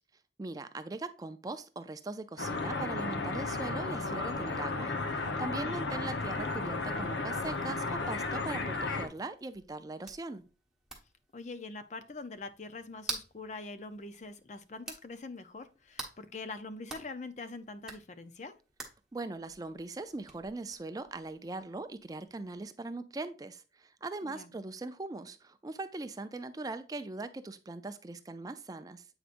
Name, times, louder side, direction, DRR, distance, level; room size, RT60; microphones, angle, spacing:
voice 1, 0.4-10.4 19.1-29.1, right 2 dB, 20° right, 10 dB, 0.4 m, -40 dB
sound 1, 2.4-9.1, left 3 dB, 85° left, 0.9 m, -34 dB
sound 2, 6.2-22.6, right 3 dB, 5° right, 1.2 m, -50 dB
voice 2, 11.3-18.5 24.2-24.5, left 3 dB, 40° left, 10 dB, 0.6 m, -44 dB
7.9 x 4.9 x 2.5 m, 0.35 s
head